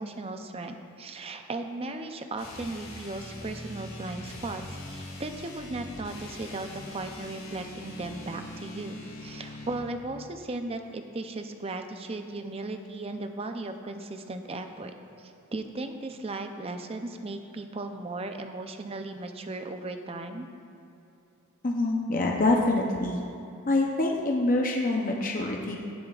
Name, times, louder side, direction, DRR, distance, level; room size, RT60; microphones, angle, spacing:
voice 1, 0.0-20.5, right 2 dB, 30° right, 6 dB, 0.5 m, -37 dB
sound 1, 2.3-9.9, left 1 dB, 75° left, 2.1 m, -42 dB
voice 2, 21.6-23.2 23.7-25.8, left 2 dB, 40° left, 0 dB, 0.7 m, -25 dB
16.5 x 7.2 x 2.4 m, 2.8 s
head